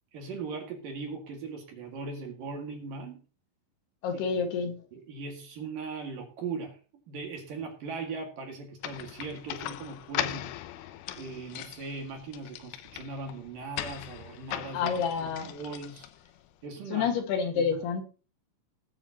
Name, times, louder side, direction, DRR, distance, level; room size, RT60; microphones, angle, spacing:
voice 1, 0.1-3.2 4.1-4.2 4.9-6.8 7.1-10.5 11.2-16.1 16.6-17.1 17.5-17.8, right 4 dB, 55° right, 3.2 m, -39 dB
voice 2, 4.0-4.7 14.7-15.5 16.9-18.0, left 6 dB, 70° left, 3.5 m, -28 dB
sound 1, 8.8-16.5, left 13 dB, 85° left, 2.2 m, -39 dB
20.0 x 8.9 x 2.9 m
omnidirectional pair, 5.3 m